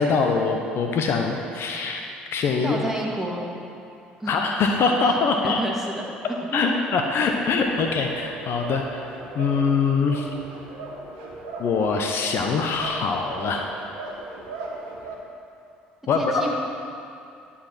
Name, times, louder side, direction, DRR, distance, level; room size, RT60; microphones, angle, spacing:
voice 1, 0.0-2.0 2.3-2.9 4.3-5.6 6.5-10.3 11.6-13.7 16.1-16.4, left 4 dB, 55° left, 3 dB, 0.8 m, -23 dB
voice 2, 2.6-3.4 4.2-4.3 5.4-6.1 6.7-6.8 16.1-16.5, right 1 dB, 5° right, -2 dB, 2.1 m, -29 dB
sound 1, 7.2-15.2, right 2 dB, 75° right, 1.5 m, -38 dB
11.5 x 4.2 x 7.5 m, 2.6 s
hypercardioid pair, 60°, 5 cm